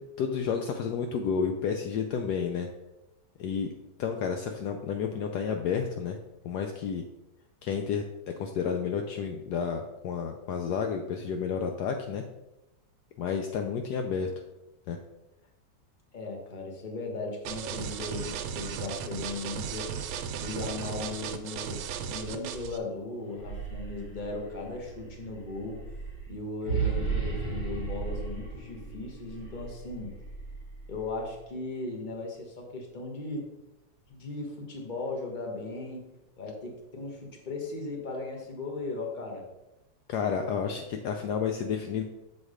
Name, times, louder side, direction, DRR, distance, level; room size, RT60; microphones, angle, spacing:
voice 1, 0.2-2.7 3.4-3.7 4.0-6.2 6.4-7.0 7.6-8.0 8.4-12.2 13.2-14.3 14.9-15.0 40.1-42.0, left 6 dB, 80° left, 4 dB, 0.9 m, -31 dB
voice 2, 16.1-19.9 20.4-21.8 22.1-25.8 26.3-30.1 30.9-33.5 34.1-36.0 36.4-39.5 40.7-40.8, left 3 dB, 30° left, 1 dB, 1.1 m, -37 dB
sound 1, 17.4-22.8, right 7 dB, 85° right, 1.5 m, -36 dB
sound 2, 23.2-31.3, right 5 dB, 65° left, 2.6 m, -36 dB
7.1 x 4.3 x 4.9 m, 0.98 s
omnidirectional pair, 2.3 m